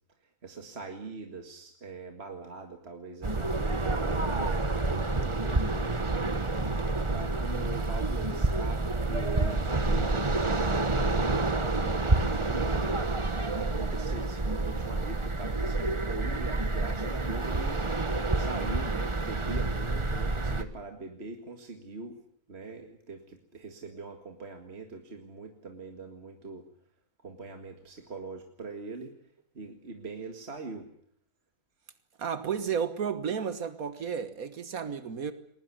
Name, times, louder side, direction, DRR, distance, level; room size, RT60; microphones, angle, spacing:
voice 1, 0.4-6.7 7.1-11.2 11.6-12.9 13.6-17.8 18.3-22.2 22.5-26.6 27.2-29.1 29.5-30.9, right 3 dB, 45° right, 2.2 m, -42 dB
sound 1, 3.2-20.6, right 2 dB, 20° right, 1.2 m, -28 dB
voice 2, 32.2-35.3, right 7 dB, 80° right, 1.8 m, -32 dB
22.0 x 19.5 x 9.6 m
omnidirectional pair, 1.5 m